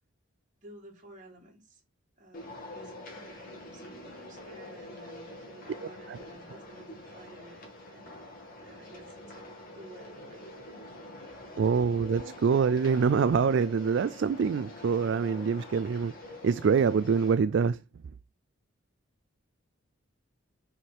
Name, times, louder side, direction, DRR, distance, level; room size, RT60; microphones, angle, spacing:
voice 1, 0.6-1.8 2.2-8.3 8.5-10.5 11.4-11.7 12.1-12.4, right 1 dB, 35° right, 2.5 m, -53 dB
sound 1, 2.3-17.3, left 1 dB, 40° left, 2.2 m, -46 dB
voice 2, 11.6-16.1 16.4-17.8, right 6 dB, 55° right, 0.3 m, -25 dB
6.1 x 4.8 x 4.6 m
head